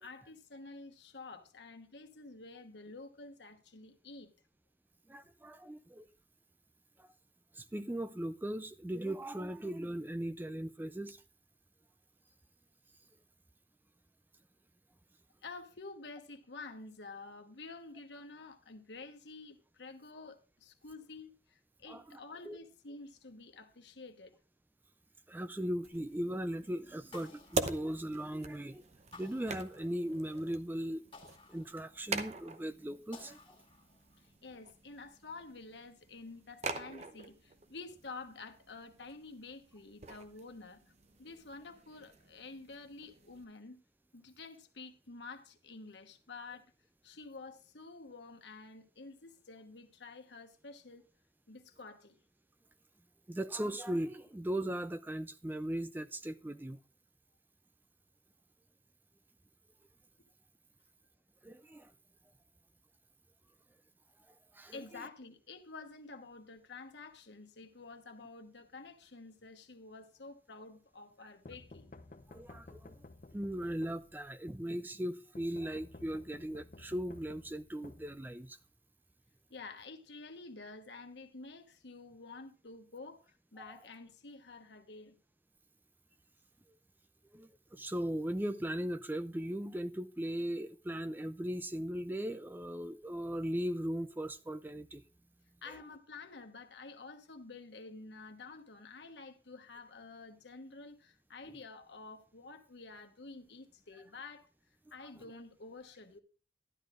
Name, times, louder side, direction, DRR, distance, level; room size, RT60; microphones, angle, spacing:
voice 1, 0.0-4.3 15.4-24.4 34.2-40.8 41.2-43.8 44.1-46.6 47.0-51.0 51.5-52.2 64.7-71.9 79.5-85.2 95.6-104.4 104.9-106.2, left 3 dB, 80° left, 1.2 m, -50 dB
voice 2, 5.1-6.1 7.0-7.1 7.5-11.2 21.9-22.2 22.5-22.6 25.3-28.8 29.2-31.0 31.5-33.4 53.3-56.8 61.4-61.9 64.5-64.8 72.3-73.0 73.3-78.6 87.3-95.0, right 1 dB, 10° right, 0.4 m, -38 dB
sound 1, 25.8-43.4, right 3 dB, 40° right, 0.7 m, -45 dB
sound 2, 27.1-28.5 29.1-30.3 31.1-32.4 33.1-34.3, left 4 dB, 30° left, 2.0 m, -57 dB
sound 3, 71.5-74.4 75.3-78.7, left 2 dB, 45° left, 0.7 m, -54 dB
12.0 x 11.0 x 2.5 m
head